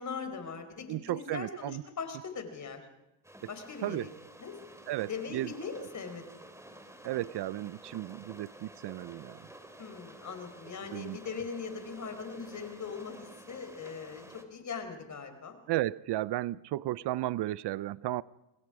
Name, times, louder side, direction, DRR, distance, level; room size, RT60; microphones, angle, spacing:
voice 1, 0.0-2.9 3.5-4.1 4.4-4.6 5.0-6.2 9.8-14.2 14.5-15.6, left 5 dB, 40° left, 8 dB, 4.4 m, -40 dB
voice 2, 0.9-1.8 3.8-4.1 4.9-5.5 7.0-9.5 10.9-11.2 15.7-18.2, right 15 dB, 60° right, 20 dB, 0.7 m, -34 dB
sound 1, 3.2-14.5, right 1 dB, 5° right, 2.9 m, -51 dB
27.0 x 21.0 x 4.9 m, 0.92 s
cardioid pair, 105°, 45 cm